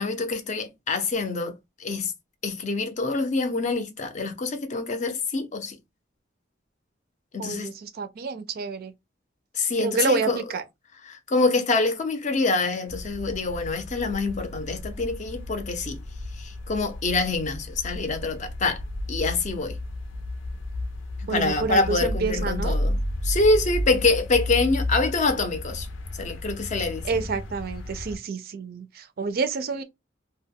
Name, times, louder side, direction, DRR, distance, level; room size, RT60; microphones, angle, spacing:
voice 1, 0.0-2.1 2.4-5.8 7.3-7.7 9.5-10.4 11.1-16.0 16.4-18.8 19.1-19.8 21.2-23.0 23.2-25.9 26.2-27.2, left 3 dB, 40° left, 0.5 m, -26 dB
voice 2, 7.4-8.9 9.8-10.6 21.3-22.8 26.8-29.8, right 4 dB, 50° right, 0.4 m, -28 dB
sound 1, 12.9-28.2, left 1 dB, 80° left, 0.6 m, -33 dB
2.2 x 2.1 x 3.4 m
head